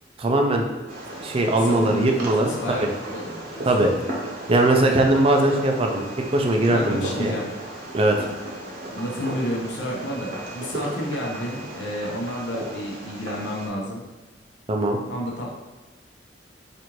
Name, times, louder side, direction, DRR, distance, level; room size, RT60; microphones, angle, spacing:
voice 1, 0.2-0.7 1.2-2.5 2.8-2.9 3.7-3.9 4.5-6.0 6.3-7.4 7.9-8.2 14.7-15.0, right 1 dB, 30° right, 2 dB, 0.4 m, -20 dB
Fireworks, 0.9-13.7, right 1 dB, 55° right, 0.8 m, -35 dB
voice 2, 1.6-3.6 5.1-5.4 6.7-7.4 8.9-14.0 15.1-15.5, equal, 75° left, -2 dB, 0.9 m, -30 dB
4.2 x 2.5 x 3.1 m, 1.2 s
head